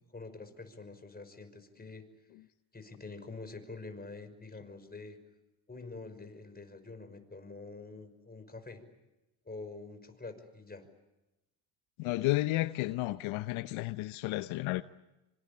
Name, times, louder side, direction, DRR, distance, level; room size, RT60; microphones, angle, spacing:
voice 1, 0.1-2.0 2.7-5.2 5.7-8.8 9.4-10.9, left 3 dB, 20° left, 5.7 m, -46 dB
voice 2, 12.0-14.8, left 18 dB, 75° left, 0.9 m, -32 dB
25.5 x 25.5 x 8.6 m
supercardioid pair, 75°, 48 cm